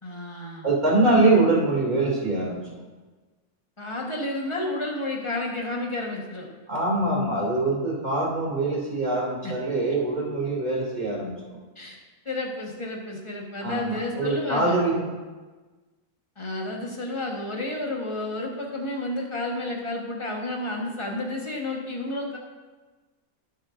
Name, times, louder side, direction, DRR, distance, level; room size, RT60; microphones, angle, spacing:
voice 1, 0.0-0.6 3.8-6.5 9.4-9.5 11.8-12.0 12.2-14.8 16.4-22.4, left 2 dB, 20° left, -1 dB, 1.4 m, -31 dB
voice 2, 0.6-2.6 6.7-11.3 13.6-15.0, right 2 dB, 30° right, -6 dB, 2.9 m, -23 dB
16.0 x 6.4 x 2.6 m, 1.3 s
omnidirectional pair, 1.6 m